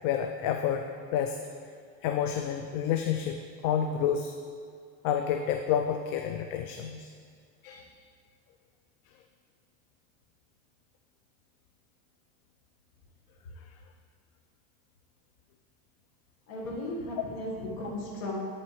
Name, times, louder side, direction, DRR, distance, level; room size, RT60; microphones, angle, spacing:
voice 1, 0.0-1.4 2.0-4.3 5.0-7.1 7.6-7.9 13.6-13.7, left 8 dB, 60° left, 5 dB, 0.5 m, -29 dB
voice 2, 16.5-18.4, left 1 dB, 85° left, -3 dB, 1.6 m, -35 dB
11.0 x 4.2 x 3.1 m, 2.1 s
supercardioid pair, 90°, 39 cm